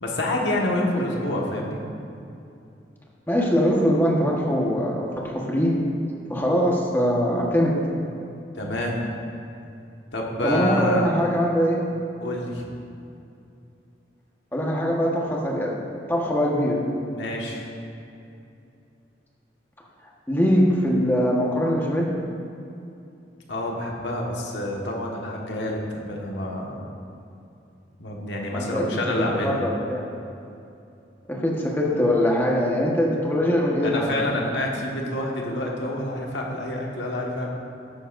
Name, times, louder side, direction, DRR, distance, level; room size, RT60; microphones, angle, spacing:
voice 1, 0.0-1.8 8.5-9.1 10.1-11.1 12.2-12.7 17.1-17.7 23.5-26.8 28.0-29.6 33.8-37.5, left 1 dB, 80° left, -1 dB, 1.5 m, -28 dB
voice 2, 3.3-5.7 6.3-7.7 10.4-11.8 14.5-15.7 16.1-16.8 20.3-22.1 28.5-28.8 29.4-30.0 31.4-34.1, equal, 10° left, -3 dB, 1.3 m, -22 dB
13.0 x 9.8 x 2.6 m, 2.6 s
head